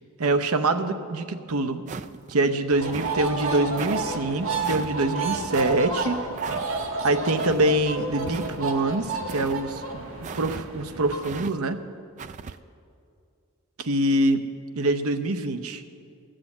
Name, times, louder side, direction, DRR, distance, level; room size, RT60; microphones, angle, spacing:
voice 1, 0.2-1.8 2.3-6.2 7.0-9.8 10.3-11.8 13.8-14.5 14.7-15.9, right 2 dB, 80° right, 9 dB, 0.8 m, -24 dB
sound 1, 1.9-2.4 2.9-3.2 3.8-4.0 4.6-4.9 5.5-5.8 6.4-6.7 7.4-7.7 8.3-8.8 9.3-9.6 10.2-10.7 11.2-11.5 12.2-12.6, right 5 dB, 35° right, 0.3 m, -37 dB
sound 2, 2.7-11.2, right 3 dB, 65° right, 1.5 m, -31 dB
14.0 x 7.6 x 8.4 m, 2.4 s
head